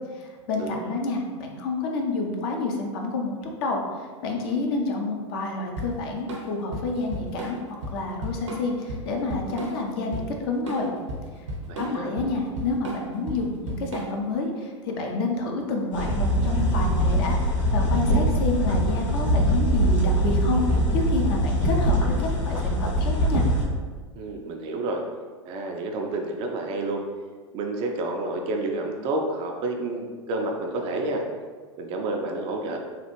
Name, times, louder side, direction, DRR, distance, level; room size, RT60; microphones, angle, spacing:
voice 1, 0.1-7.6 7.9-10.9 11.8-17.4 17.7-23.4, left 3 dB, 50° left, 1 dB, 0.6 m, -29 dB
Drum kit / Drum, 5.8-14.4, right 1 dB, 65° right, 0.7 m, -35 dB
voice 2, 11.7-12.1 24.2-25.0 25.5-27.0 27.5-31.2 31.8-32.8, right 2 dB, 35° right, 2 dB, 0.4 m, -29 dB
sound 1, 15.9-23.7, equal, 75° left, 1.1 m, -22 dB
3.1 x 2.3 x 3.0 m, 1.5 s
figure-of-eight pair, 90°, 16 cm